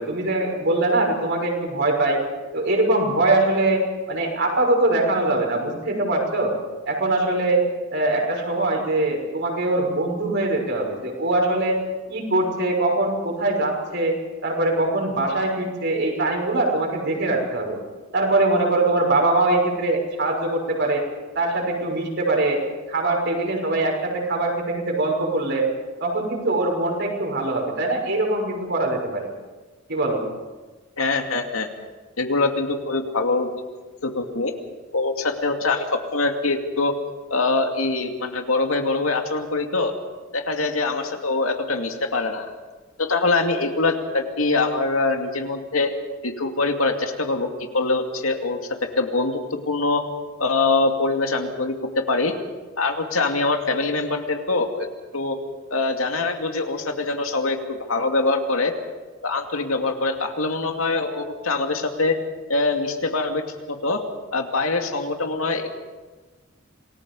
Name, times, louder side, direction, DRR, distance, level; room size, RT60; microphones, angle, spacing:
voice 1, 0.0-2.2 2.5-6.5 6.9-7.6 7.9-11.8 12.1-14.1 14.4-17.8 18.1-21.0 21.3-22.6 22.9-25.7 26.0-29.3 29.9-30.2, right 2 dB, 55° right, 0 dB, 6.2 m, -22 dB
voice 2, 31.0-31.7 32.2-33.5 34.0-34.5 34.9-36.9 37.3-39.9 40.3-42.5 43.0-45.9 46.2-47.5 47.7-50.0 50.4-52.3 52.8-54.9 55.1-55.4 55.7-58.7 59.2-62.2 62.5-63.4 63.7-64.0 64.3-65.8, left 3 dB, 85° left, 4 dB, 2.4 m, -23 dB
27.5 x 19.5 x 5.4 m, 1.3 s
head